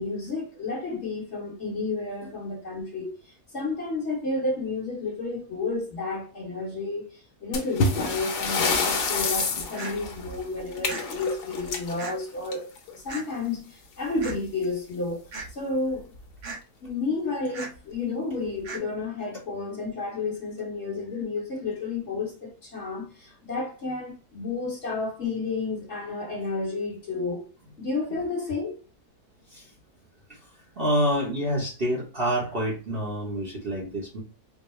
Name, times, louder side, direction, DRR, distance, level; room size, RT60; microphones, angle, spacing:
voice 1, 0.0-3.1 3.5-7.1 7.4-15.2 15.5-16.1 16.8-27.4 27.8-28.8, left 3 dB, 50° left, 1.4 m, -31 dB
sound 1, 7.5-12.9 14.2-14.3 14.6-14.7 15.4-15.5 16.2-16.4, left 4 dB, 85° left, 1.4 m, -28 dB
sound 2, 9.8-9.9 10.9-11.0 12.0-12.1 13.1-13.2 14.2-14.3 15.3-15.5 16.4-16.6 17.5-17.7 18.6-18.8, right 4 dB, 85° right, 1.6 m, -36 dB
voice 2, 30.8-34.2, equal, 40° right, 1.1 m, -27 dB
4.6 x 2.1 x 3.1 m
omnidirectional pair, 1.7 m